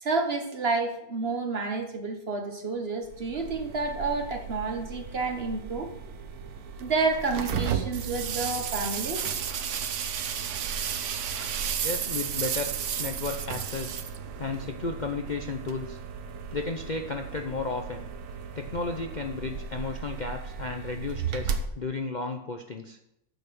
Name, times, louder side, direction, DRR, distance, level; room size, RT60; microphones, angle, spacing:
voice 1, 0.0-5.9 6.8-9.3, right 3 dB, 45° right, 4 dB, 1.3 m, -30 dB
sound 1, 3.0-21.7, right 6 dB, 75° right, 1.4 m, -37 dB
sound 2, 7.9-14.6, right 9 dB, 60° right, 1.0 m, -32 dB
voice 2, 11.8-14.0 14.4-16.0 16.5-18.1 18.6-23.0, left 3 dB, 40° left, 4 dB, 0.7 m, -33 dB
9.0 x 6.7 x 6.8 m, 0.81 s
omnidirectional pair, 1.6 m